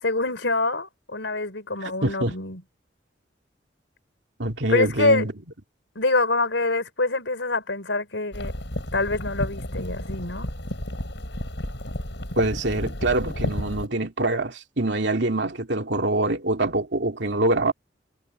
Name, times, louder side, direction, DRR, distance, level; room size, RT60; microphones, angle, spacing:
voice 1, 0.0-2.6 4.7-5.2 5.9-8.5 8.9-10.5, left 2 dB, 90° left, 4.5 m, -25 dB
voice 2, 1.8-2.3 4.4-5.3 12.4-17.7, right 2 dB, 75° right, 2.6 m, -25 dB
sound 1, 8.3-13.9, left 1 dB, 70° left, 6.9 m, -32 dB
head